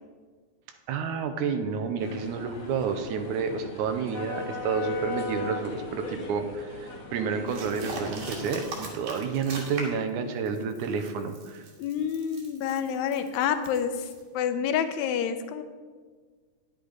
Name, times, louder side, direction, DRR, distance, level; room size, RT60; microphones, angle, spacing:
voice 1, 0.9-11.6, right 5 dB, 80° right, 7 dB, 2.2 m, -30 dB
sound 1, 2.0-8.6, left 2 dB, 55° left, 1.0 m, -38 dB
sound 2, 7.5-10.1 10.5-14.2, right 3 dB, 65° right, 2.9 m, -40 dB
voice 2, 11.8-14.1 14.3-15.6, left 8 dB, 80° left, 9 dB, 1.9 m, -28 dB
10.5 x 8.3 x 4.0 m, 1.5 s
omnidirectional pair, 3.5 m